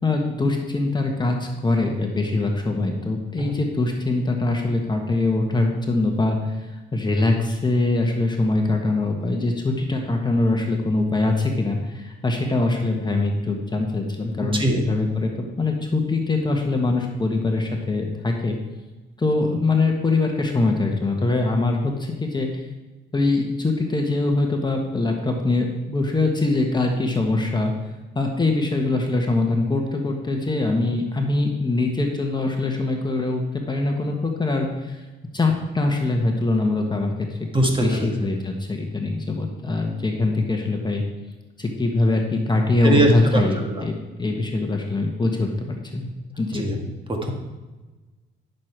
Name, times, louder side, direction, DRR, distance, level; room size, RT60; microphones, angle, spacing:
voice 1, 0.0-18.6 19.2-22.6 23.1-27.7 28.1-35.0 35.3-37.4 37.8-41.0 41.6-46.1 46.4-46.8, left 2 dB, 20° left, 2 dB, 1.3 m, -23 dB
voice 2, 37.5-38.1 42.8-43.8 46.5-46.8 47.1-47.3, right 1 dB, 25° right, 2 dB, 1.8 m, -21 dB
10.5 x 6.6 x 4.5 m, 1.2 s
cardioid pair, 90°, 20 cm